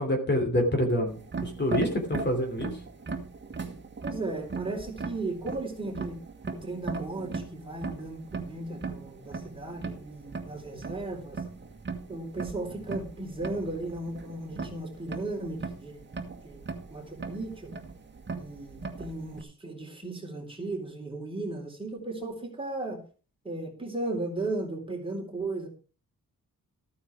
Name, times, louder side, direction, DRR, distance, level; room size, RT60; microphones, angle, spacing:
voice 1, 0.0-2.8, left 1 dB, 30° left, 3 dB, 3.1 m, -27 dB
sound 1, 1.1-19.4, right 4 dB, 35° right, 2.0 m, -38 dB
voice 2, 4.0-6.2 6.5-11.4 12.1-16.0 16.4-17.7 18.4-23.0 23.4-25.7, right 2 dB, 15° right, 0 dB, 4.0 m, -36 dB
14.0 x 9.2 x 4.8 m, 0.37 s
wide cardioid pair, 145°, 34 cm